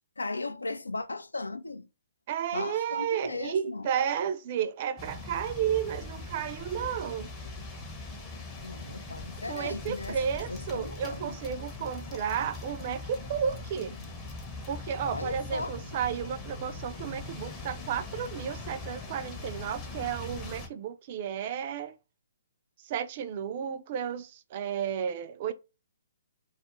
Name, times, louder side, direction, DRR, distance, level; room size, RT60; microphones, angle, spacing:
voice 1, 0.2-1.9 2.5-3.9 8.6-10.2 10.5-11.4 15.0-15.8, left 3 dB, 90° left, 0.3 m, -36 dB
voice 2, 2.3-7.3 9.5-13.9 14.7-22.0 22.8-25.5, right 8 dB, 40° right, 0.3 m, -32 dB
sound 1, 5.0-20.7, left 3 dB, 20° left, 0.6 m, -41 dB
2.3 x 2.1 x 2.9 m
figure-of-eight pair, 130°, 0 cm